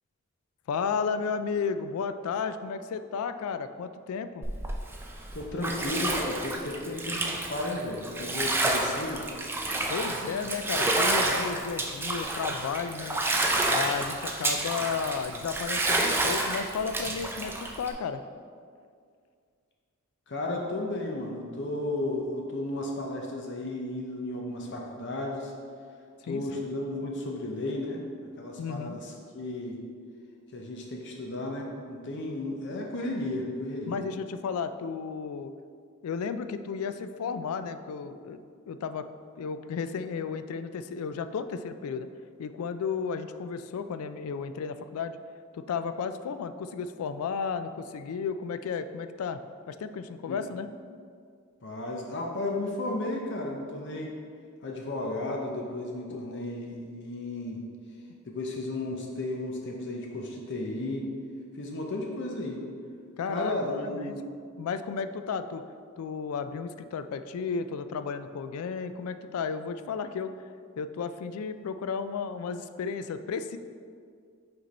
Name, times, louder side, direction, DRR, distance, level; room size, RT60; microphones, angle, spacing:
voice 1, 0.7-4.4 9.9-13.2 13.7-18.2 26.3-26.6 28.6-29.0 33.9-35.5 36.0-38.4 38.7-39.1 39.4-42.1 42.4-45.2 45.5-49.4 49.7-50.7 56.1-56.4 63.2-64.1 64.6-65.6 66.0-70.3 70.8-73.6, left 5 dB, 90° left, 11 dB, 0.3 m, -33 dB
Bathtub (filling or washing), 4.4-17.9, right 2 dB, 10° right, 0.4 m, -29 dB
voice 2, 5.3-9.2 20.3-25.5 26.2-28.0 28.4-29.8 30.5-34.0 50.3-50.4 51.6-54.1 54.6-57.6 58.2-61.1 61.5-62.6 63.3-64.2, left 2 dB, 55° left, 0 dB, 0.7 m, -34 dB
5.2 x 4.5 x 4.0 m, 2.2 s
head